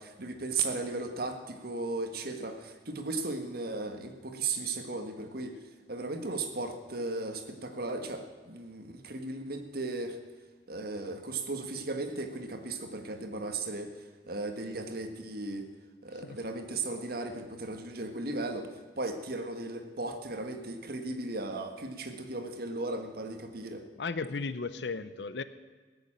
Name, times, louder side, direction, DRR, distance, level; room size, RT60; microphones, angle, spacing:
voice 1, 0.0-5.5 5.9-10.2 10.7-13.9 14.3-15.7 16.0-23.8, right 3 dB, 60° right, 6 dB, 1.5 m, -36 dB
voice 2, 24.0-25.4, left 4 dB, 70° left, 14 dB, 0.7 m, -35 dB
17.0 x 7.1 x 8.8 m, 1.4 s
head